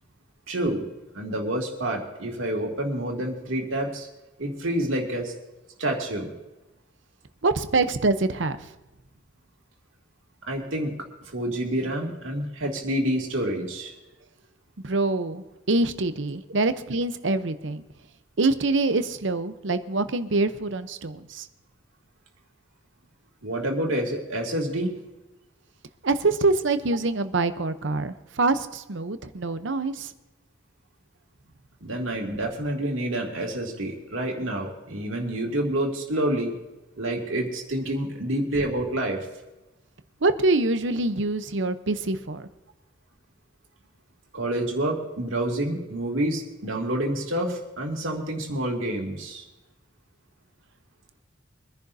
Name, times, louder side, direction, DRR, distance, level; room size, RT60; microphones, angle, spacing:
voice 1, 0.5-0.8 1.1-4.1 4.4-5.3 5.8-6.3 10.5-10.9 11.3-13.9 23.4-24.9 31.8-36.6 37.0-39.2 44.3-49.4, right 1 dB, 80° right, 0 dB, 2.5 m, -28 dB
voice 2, 7.4-8.7 14.8-17.8 18.4-21.5 26.0-30.1 40.2-42.5, right 3 dB, 65° right, 11 dB, 0.8 m, -25 dB
24.5 x 10.5 x 2.7 m, 1.1 s
head